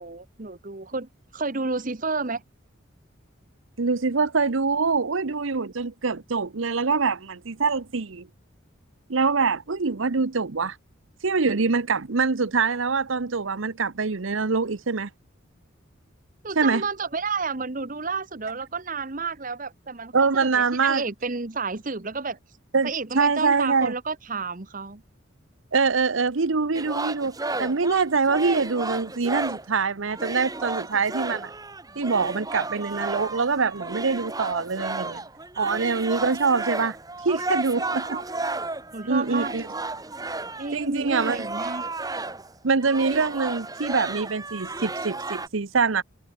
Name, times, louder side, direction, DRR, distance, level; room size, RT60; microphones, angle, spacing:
voice 1, 0.0-2.4 16.4-22.4 22.8-25.0 37.9-38.2 38.9-39.5 40.5-41.8, right 4 dB, 40° right, 1.1 m, -31 dB
voice 2, 3.8-8.3 9.1-10.8 11.2-15.1 16.6-16.8 20.1-21.0 22.7-22.9 23.2-23.9 25.7-31.5 32.0-35.2 35.6-37.0 37.2-38.2 39.1-39.7 40.7-41.4 42.6-46.0, right 4 dB, 80° right, 0.9 m, -24 dB
sound 1, 26.7-29.7 30.1-42.5 42.8-45.5, right 3 dB, 20° right, 2.4 m, -33 dB
head